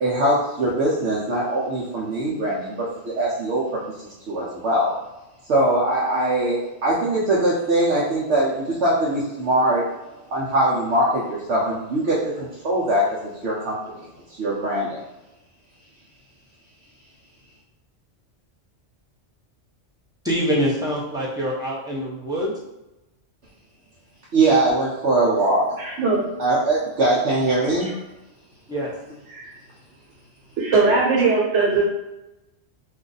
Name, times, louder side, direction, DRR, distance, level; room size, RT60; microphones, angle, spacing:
voice 1, 0.0-3.6 4.3-4.9 5.5-9.8 10.3-13.0 13.4-13.8 14.4-15.0 24.3-25.8 26.4-27.9, right 1 dB, 70° right, -7 dB, 1.0 m, -21 dB
voice 2, 20.2-22.6 28.7-28.9, equal, 5° right, -7 dB, 0.6 m, -25 dB
voice 3, 25.8-26.2 27.8-27.9 29.3-29.5 30.6-31.8, right 4 dB, 85° right, -3 dB, 1.3 m, -20 dB
2.6 x 2.3 x 3.8 m, 0.98 s
omnidirectional pair, 1.2 m